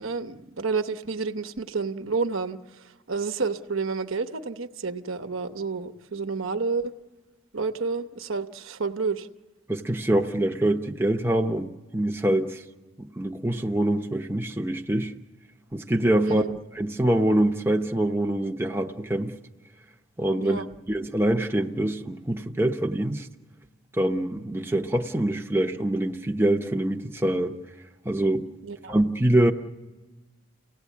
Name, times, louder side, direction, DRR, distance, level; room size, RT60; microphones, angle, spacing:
voice 1, 0.0-6.9 7.5-9.3 16.2-16.6 20.4-20.7 28.6-29.0, right 4 dB, 80° right, 9 dB, 1.0 m, -30 dB
voice 2, 9.7-12.6 13.0-15.1 15.7-16.4 16.7-19.3 20.2-20.6 20.9-23.3 23.9-27.6 28.0-28.5 28.9-29.5, right 1 dB, 10° right, 3 dB, 0.7 m, -24 dB
30.0 x 17.0 x 8.3 m, 1.3 s
head